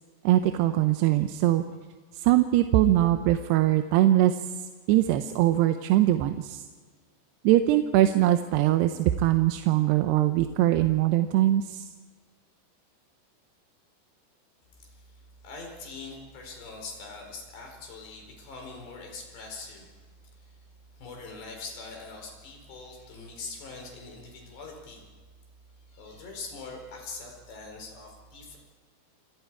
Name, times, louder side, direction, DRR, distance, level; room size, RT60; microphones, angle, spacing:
voice 1, 0.2-1.6 2.1-4.5 4.9-6.6 7.4-11.9, right 14 dB, 80° right, 7 dB, 2.8 m, -22 dB
voice 2, 14.8-19.9 20.4-20.6 20.9-25.0 25.9-28.6, left 3 dB, 80° left, 2 dB, 6.7 m, -43 dB
28.0 x 26.5 x 4.7 m, 1.5 s
omnidirectional pair, 4.9 m